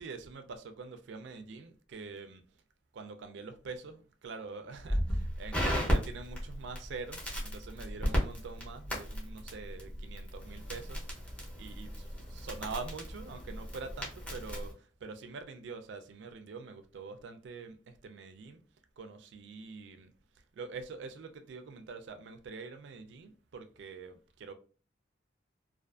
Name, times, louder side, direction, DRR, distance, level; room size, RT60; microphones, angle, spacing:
voice 1, 0.0-2.4 2.9-11.3 11.6-11.9 12.4-18.6 19.0-20.1 20.5-24.5, right 4 dB, 70° right, 0.4 m, -45 dB
Crackle, 4.9-14.7, equal, 10° left, 0.6 m, -35 dB
2.4 x 2.4 x 2.3 m
head